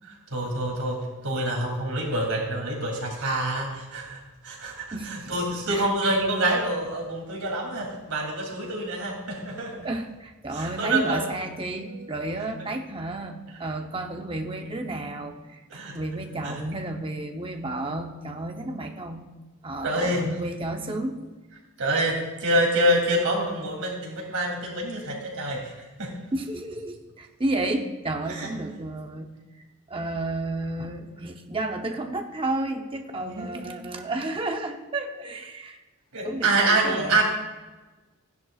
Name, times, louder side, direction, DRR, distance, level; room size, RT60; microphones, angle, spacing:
voice 1, 0.0-9.8 10.5-11.2 11.9-12.1 15.7-16.6 19.8-20.3 21.8-26.2 28.3-28.5 33.2-33.9 36.1-37.2, right 1 dB, 75° right, -1 dB, 2.9 m, -27 dB
voice 2, 4.9-5.3 5.7-5.9 9.8-19.3 19.6-21.2 26.3-29.3 29.6-35.8 36.2-37.2, right 2 dB, 25° right, 4 dB, 0.8 m, -32 dB
15.0 x 10.5 x 2.4 m, 1.2 s
head